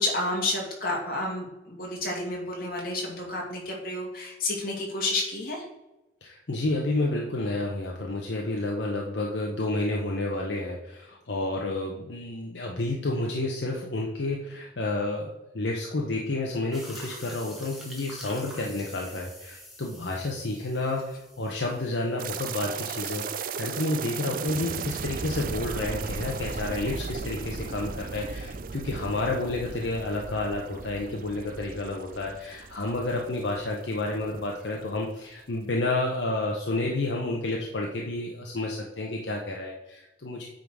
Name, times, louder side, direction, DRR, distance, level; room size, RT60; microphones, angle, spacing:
voice 1, 0.0-5.6, left 2 dB, 50° left, -1 dB, 2.2 m, -30 dB
voice 2, 6.2-40.5, left 2 dB, 70° left, -1 dB, 0.9 m, -30 dB
sound 1, 16.7-22.3, equal, ahead, 1.5 m, -46 dB
sound 2, 22.2-34.5 34.8-34.9 35.5-35.6, right 5 dB, 45° right, 0.4 m, -36 dB
9.0 x 3.9 x 4.7 m, 0.96 s
head